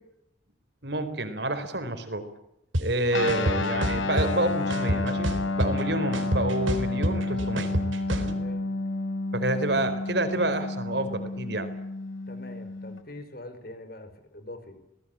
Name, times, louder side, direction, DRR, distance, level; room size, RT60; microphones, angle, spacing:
voice 1, 0.8-2.3 2.8-5.3 5.6-7.7 8.1-8.4 9.3-11.7, right 1 dB, 60° right, 9 dB, 4.2 m, -28 dB
sound 1, 2.7-2.8 3.3-4.3 4.7-5.8 6.1-8.3, equal, 85° right, 4.0 m, -27 dB
Guitar, 3.1-13.0, left 2 dB, 85° left, 3.5 m, -30 dB
voice 2, 12.3-14.8, left 1 dB, 50° left, 9 dB, 4.9 m, -43 dB
26.5 x 20.0 x 8.8 m, 0.83 s
head